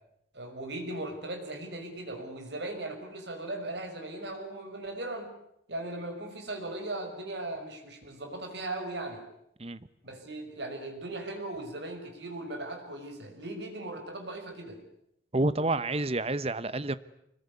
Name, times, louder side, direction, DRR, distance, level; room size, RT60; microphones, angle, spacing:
voice 1, 0.3-5.3 5.7-9.2 10.0-14.8, right 2 dB, 65° right, 4 dB, 5.8 m, -38 dB
voice 2, 15.3-17.0, right 2 dB, 35° right, 15 dB, 1.0 m, -29 dB
25.0 x 21.0 x 9.7 m, 0.77 s
head